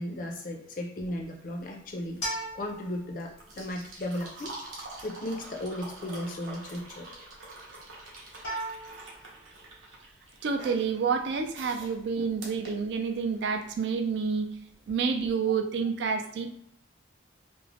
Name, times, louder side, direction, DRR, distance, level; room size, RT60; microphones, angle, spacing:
voice 1, 0.0-2.2 2.5-4.5 5.0-7.1, left 1 dB, 45° left, 1 dB, 0.5 m, -35 dB
sound 1, 1.2-13.5 14.8-14.9, right 2 dB, 90° right, 0.8 m, -47 dB
sound 2, 2.2-14.9, right 1 dB, 90° left, 0.9 m, -43 dB
sound 3, 3.5-9.1, right 2 dB, 40° right, 0.8 m, -49 dB
voice 2, 10.4-14.5 14.9-16.6, right 5 dB, 65° right, 7 dB, 0.3 m, -29 dB
2.5 x 2.0 x 3.2 m, 0.70 s
head